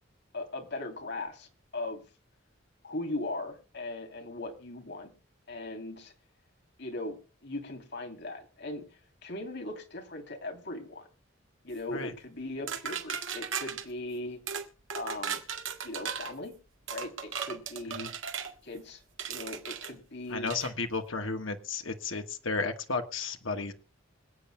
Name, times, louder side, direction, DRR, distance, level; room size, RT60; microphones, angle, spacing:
voice 1, 0.3-1.5 1.7-2.0 2.8-5.1 5.5-6.1 6.8-8.9 9.2-11.1 11.6-14.4 14.9-15.4 15.8-16.5 16.9-18.1 18.6-19.0 19.3-20.5, left 2 dB, 55° left, 4 dB, 3.0 m, -39 dB
sound 1, 12.7-13.9 14.5-14.7 14.9-16.3 16.9-18.5 19.2-19.9 20.5-20.7, right 7 dB, 70° right, 1.8 m, -36 dB
voice 2, 20.3-23.7, left 4 dB, 75° left, 5 dB, 1.4 m, -33 dB
26.0 x 8.8 x 2.2 m, 0.31 s
head